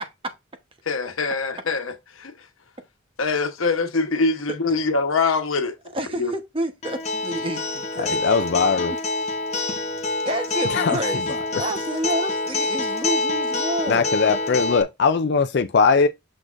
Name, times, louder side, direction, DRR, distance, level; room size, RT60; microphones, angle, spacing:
voice 1, 0.9-2.3 3.2-5.7 6.2-6.3, left 4 dB, 90° left, 1.1 m, -23 dB
voice 2, 5.9-8.2 10.2-14.1, right 1 dB, 25° right, 1.0 m, -29 dB
Acoustic guitar, 6.8-14.8, left 3 dB, 35° left, 0.9 m, -26 dB
voice 3, 8.0-8.9 10.7-11.2 11.5-11.6 13.9-16.1, left 5 dB, 55° left, 0.4 m, -20 dB
6.5 x 6.0 x 2.5 m
head